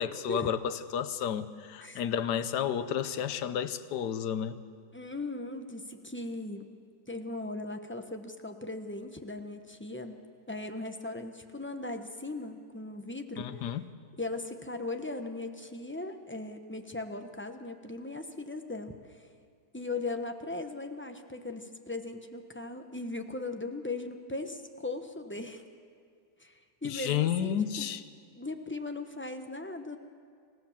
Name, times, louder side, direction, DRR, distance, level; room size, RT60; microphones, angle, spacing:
voice 1, 0.0-4.6 13.4-13.9 26.8-28.0, left 9 dB, 75° left, 13 dB, 1.4 m, -31 dB
voice 2, 4.9-6.7 7.1-10.2 10.5-13.5 14.2-19.3 19.7-25.6 26.4-27.9 28.4-30.0, left 2 dB, 10° left, 6 dB, 0.7 m, -38 dB
27.5 x 16.0 x 7.2 m, 2.2 s
omnidirectional pair, 1.8 m